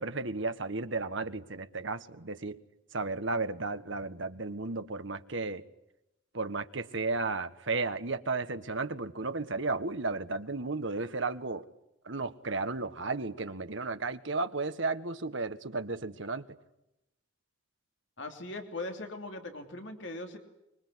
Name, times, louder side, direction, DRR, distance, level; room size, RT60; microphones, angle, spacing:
voice 1, 0.0-2.6 2.9-5.6 6.3-11.6 12.0-16.4, right 3 dB, 60° right, 10 dB, 1.5 m, -34 dB
voice 2, 18.2-20.4, left 2 dB, 60° left, 5 dB, 3.1 m, -40 dB
25.0 x 23.5 x 9.9 m, 0.88 s
head